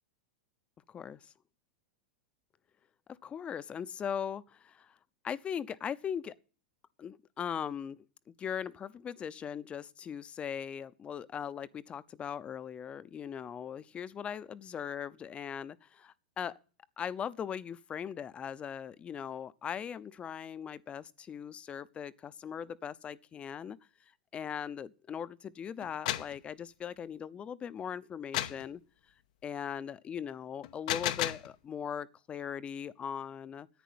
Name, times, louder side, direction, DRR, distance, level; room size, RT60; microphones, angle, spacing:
voice 1, 0.9-1.3 3.1-4.9 5.2-6.3 7.0-8.0 8.4-16.6 17.0-23.8 24.3-28.8 29.4-33.7, left 8 dB, 25° left, 0.7 m, -39 dB
sound 1, 25.8-26.4 28.3-28.7 30.6-31.5, left 14 dB, 65° left, 0.7 m, -33 dB
10.5 x 9.1 x 8.6 m
hypercardioid pair, 100°, 4 cm